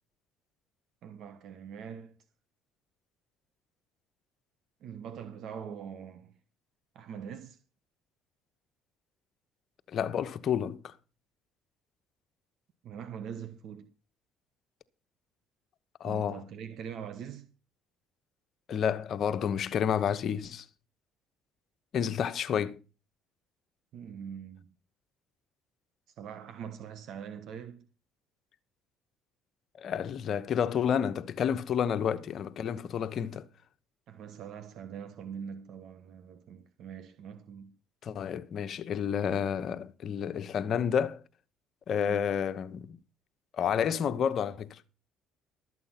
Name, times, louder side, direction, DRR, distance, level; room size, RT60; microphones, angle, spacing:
voice 1, 1.0-2.2 4.8-6.3 6.9-7.6 12.8-13.9 16.0-17.5 23.9-24.7 26.2-27.9 34.1-37.8 42.0-42.4, right 7 dB, 65° right, 1.3 m, -43 dB
voice 2, 9.9-10.9 16.0-16.4 18.7-20.7 21.9-22.8 29.8-33.5 38.0-41.2 41.9-43.0 43.5-44.8, left 8 dB, 55° left, 1.0 m, -30 dB
13.0 x 8.3 x 5.8 m
supercardioid pair, 85°, 0 cm